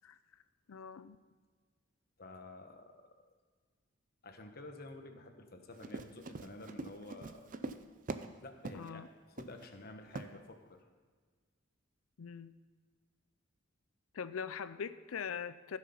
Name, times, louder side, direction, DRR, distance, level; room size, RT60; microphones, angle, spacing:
voice 1, 0.7-1.2 8.7-9.1 12.2-12.5 14.1-15.8, left 7 dB, 90° left, 13 dB, 0.5 m, -42 dB
voice 2, 2.2-2.9 4.2-7.5 8.4-10.8, left 2 dB, 45° left, 5 dB, 1.1 m, -50 dB
Run, 5.7-8.3 8.6-8.9 9.4-9.7 10.1-10.3, right 3 dB, 40° right, 0.5 m, -43 dB
15.0 x 6.5 x 5.5 m, 1.5 s
head